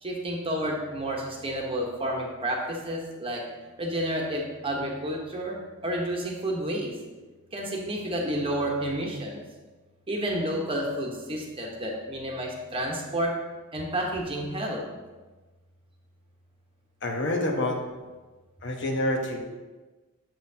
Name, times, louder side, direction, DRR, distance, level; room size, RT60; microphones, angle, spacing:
voice 1, 0.0-3.4 3.8-5.6 5.8-6.9 7.5-9.4 10.1-13.3 13.7-14.8, right 1 dB, 25° right, 0 dB, 1.0 m, -30 dB
voice 2, 17.0-17.8 18.6-19.4, left 1 dB, 55° left, 1 dB, 1.0 m, -27 dB
7.5 x 7.2 x 2.8 m, 1.2 s
head